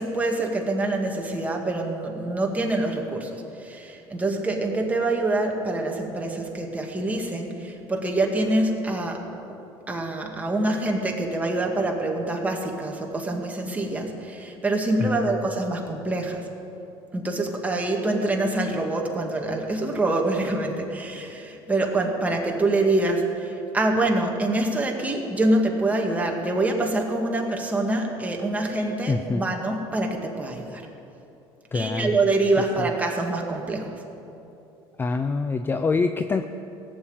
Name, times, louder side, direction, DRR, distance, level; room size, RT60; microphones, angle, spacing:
voice 1, 0.0-9.2 9.9-16.5 17.1-30.8 31.7-34.0, right 2 dB, 15° right, 1 dB, 2.0 m, -25 dB
voice 2, 15.0-15.4 29.1-29.5 31.7-32.2 32.8-32.9 35.0-36.5, left 4 dB, 20° left, 9 dB, 0.5 m, -25 dB
17.0 x 7.5 x 8.8 m, 2.9 s
cardioid pair, 110°, 10 cm